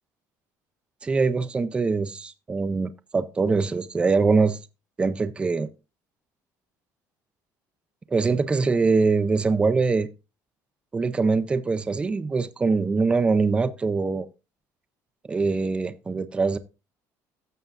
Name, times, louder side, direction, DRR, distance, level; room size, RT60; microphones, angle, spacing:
voice 1, 1.0-4.6 5.0-5.7 8.1-10.1 10.9-14.3 15.2-16.6, right 4 dB, 15° right, 0.5 m, -23 dB
14.5 x 6.9 x 2.5 m
cardioid pair, 155°, 7 cm